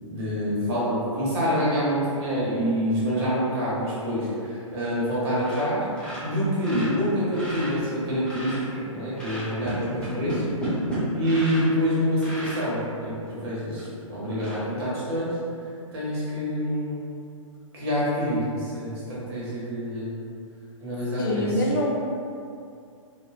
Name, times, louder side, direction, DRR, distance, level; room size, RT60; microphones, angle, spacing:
voice 1, 0.0-5.8 6.2-8.5 8.9-10.4 11.1-15.4 15.9-17.1 17.7-20.1 20.8-21.5, equal, 50° right, -8 dB, 1.2 m, -26 dB
sound 1, 4.7-5.1 5.4-5.7 5.9-8.7 9.1-11.8 12.2-12.6 13.3-13.4 13.8-13.9 14.3-14.6, equal, 5° left, 0.9 m, -33 dB
voice 2, 21.2-21.9, left 1 dB, 40° left, -1 dB, 0.4 m, -24 dB
3.7 x 2.1 x 2.4 m, 2.4 s
figure-of-eight pair, 120°, 17 cm